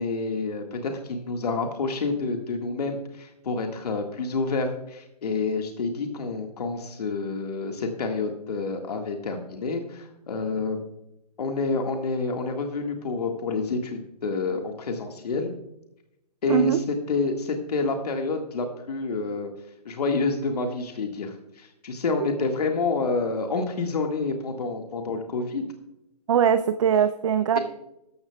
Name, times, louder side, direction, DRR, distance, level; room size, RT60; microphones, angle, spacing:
voice 1, 0.0-10.8 11.4-15.5 16.4-19.5 19.9-25.7, left 3 dB, 65° left, 3 dB, 1.8 m, -28 dB
voice 2, 26.3-27.6, right 8 dB, 50° right, 10 dB, 0.6 m, -21 dB
13.5 x 12.5 x 2.3 m, 0.84 s
hypercardioid pair, 155°, 21 cm